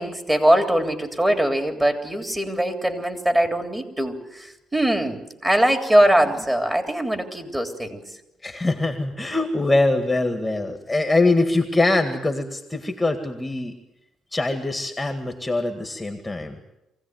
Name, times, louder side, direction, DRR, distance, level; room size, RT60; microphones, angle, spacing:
voice 1, 0.0-8.0, right 1 dB, 15° right, 6 dB, 3.4 m, -21 dB
voice 2, 8.4-13.7 14.3-16.6, left 2 dB, 15° left, 6 dB, 2.0 m, -23 dB
23.5 x 16.5 x 9.3 m, 0.91 s
cardioid pair, 90°, 0 cm